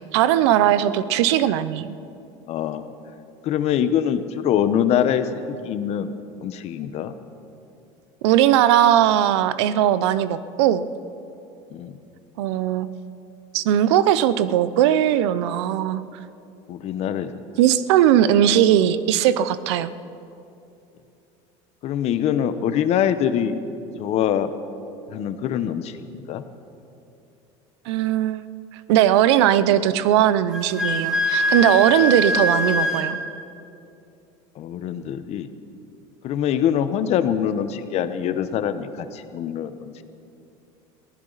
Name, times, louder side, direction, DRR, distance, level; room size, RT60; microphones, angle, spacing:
voice 1, 0.0-2.0 8.2-10.8 12.4-12.9 13.5-16.0 17.6-19.9 27.9-28.4 28.7-33.2, right 11 dB, 90° right, 15 dB, 0.7 m, -19 dB
voice 2, 2.5-2.9 3.4-6.1 6.4-7.1 11.7-12.0 16.7-17.3 21.8-23.6 24.0-24.5 25.1-26.4 34.6-35.5 36.2-40.0, left 9 dB, 50° left, 10 dB, 1.0 m, -24 dB
Wind instrument woodwind instrument, 30.5-33.1, left 1 dB, 5° right, 2.2 m, -22 dB
22.5 x 15.5 x 4.1 m, 2.7 s
supercardioid pair, 125°, 14 cm